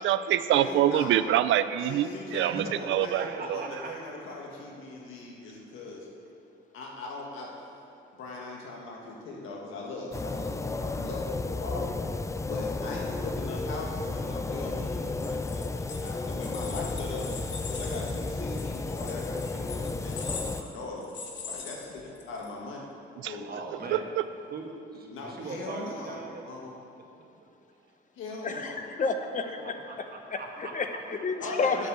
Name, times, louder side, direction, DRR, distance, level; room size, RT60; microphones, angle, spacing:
voice 1, 0.0-3.8 23.2-23.3 23.9-24.2, right 11 dB, 75° right, 13 dB, 0.4 m, -26 dB
voice 2, 0.5-1.2 1.8-6.1 6.7-7.6 8.1-12.0 12.4-17.3 17.6-21.1 21.4-22.8 23.2-23.5 25.1-26.7 28.1-28.8 29.6-29.7 31.4-31.9, left 3 dB, 85° left, -2 dB, 1.7 m, -39 dB
voice 3, 3.2-3.9 23.5-24.1 24.5-26.4 28.5-28.6 29.6-30.7 31.7-31.8, right 4 dB, 50° right, 0 dB, 1.7 m, -40 dB
sound 1, 10.1-20.6, left 3 dB, 15° left, 0.4 m, -33 dB
sound 2, 15.1-22.5, left 5 dB, 65° left, 1.5 m, -42 dB
voice 4, 28.4-28.7 29.0-29.7 30.3-31.9, left 4 dB, 40° left, 6 dB, 1.0 m, -30 dB
7.7 x 6.8 x 7.9 m, 2.5 s
cardioid pair, 90°, 20 cm